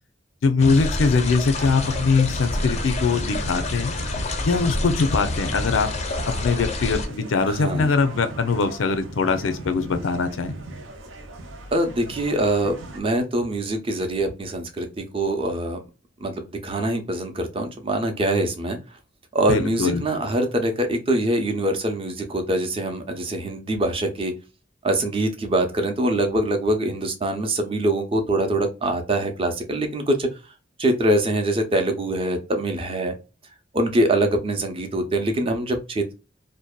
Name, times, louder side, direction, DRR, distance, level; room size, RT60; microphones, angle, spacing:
voice 1, 0.4-3.9 4.4-5.9 6.3-10.5 19.5-20.0, left 4 dB, 90° left, 0.5 m, -22 dB
sound 1, 0.6-7.1, left 2 dB, 35° left, 0.4 m, -28 dB
sound 2, 1.6-13.0, right 2 dB, 90° right, 0.6 m, -38 dB
voice 2, 7.5-7.9 11.7-15.8 16.2-18.8 19.3-24.3 24.8-30.3 30.8-33.1 33.7-36.1, right 1 dB, 30° right, 0.5 m, -24 dB
2.6 x 2.1 x 2.2 m
head